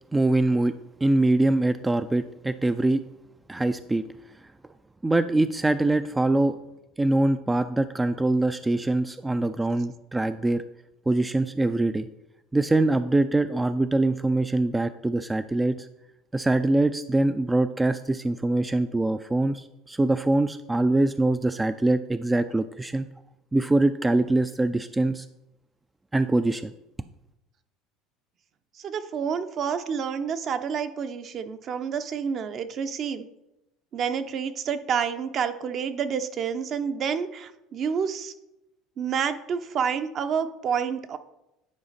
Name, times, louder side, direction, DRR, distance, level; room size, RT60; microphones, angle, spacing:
voice 1, 0.1-0.7 1.0-3.0 3.5-4.0 5.0-6.6 7.0-10.6 11.1-12.1 12.5-15.8 16.3-23.1 23.5-25.3 26.1-26.7, right 2 dB, 10° right, 10 dB, 0.3 m, -23 dB
voice 2, 28.8-33.3 33.9-38.3 39.0-41.2, right 7 dB, 45° right, 10 dB, 0.7 m, -29 dB
10.5 x 5.0 x 4.1 m, 0.91 s
supercardioid pair, 105°, 0 cm